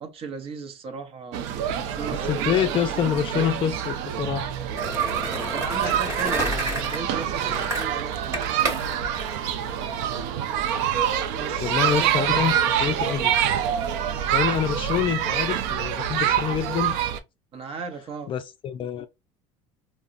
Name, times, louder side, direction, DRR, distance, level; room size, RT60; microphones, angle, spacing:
voice 1, 0.0-3.1 5.5-8.4 11.4-12.3 17.5-18.3, right 4 dB, 40° right, 0.8 m, -36 dB
sound 1, 1.3-17.2, right 9 dB, 80° right, 0.5 m, -26 dB
sound 2, 1.8-9.0, left 3 dB, 20° left, 1.0 m, -41 dB
voice 2, 2.1-4.5 11.6-13.3 14.3-17.0 18.3-19.1, left 9 dB, 40° left, 0.4 m, -26 dB
Skateboard, 4.8-10.2, right 2 dB, 20° right, 1.2 m, -32 dB
3.6 x 2.1 x 2.5 m
supercardioid pair, 120°, 14 cm